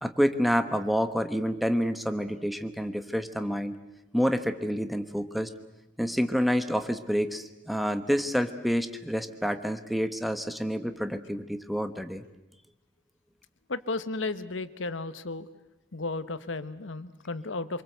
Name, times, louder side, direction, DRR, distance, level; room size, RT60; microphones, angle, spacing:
voice 1, 0.0-3.8 4.1-5.5 6.0-12.2, equal, ahead, 9 dB, 1.2 m, -28 dB
voice 2, 13.7-15.5 15.9-17.8, left 3 dB, 90° left, 13 dB, 1.2 m, -34 dB
25.0 x 23.5 x 8.0 m, 0.97 s
head